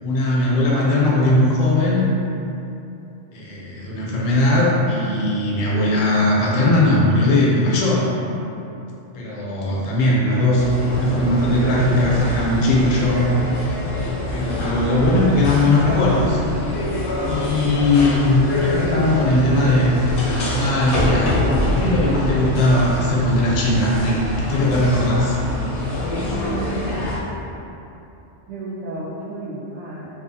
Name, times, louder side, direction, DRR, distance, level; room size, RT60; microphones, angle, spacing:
voice 1, 0.0-2.0 3.3-8.1 9.1-13.2 14.3-16.4 17.2-21.4 21.8-25.4, left 1 dB, 80° left, -4 dB, 1.0 m, -19 dB
sound 1, 10.5-23.1, equal, 25° right, 0.7 m, -35 dB
sound 2, 10.6-27.2, left 2 dB, 55° left, 0.7 m, -25 dB
voice 2, 26.1-27.0 28.5-30.1, right 2 dB, 70° right, -5 dB, 0.8 m, -32 dB
2.6 x 2.3 x 2.5 m, 2.8 s
omnidirectional pair, 1.3 m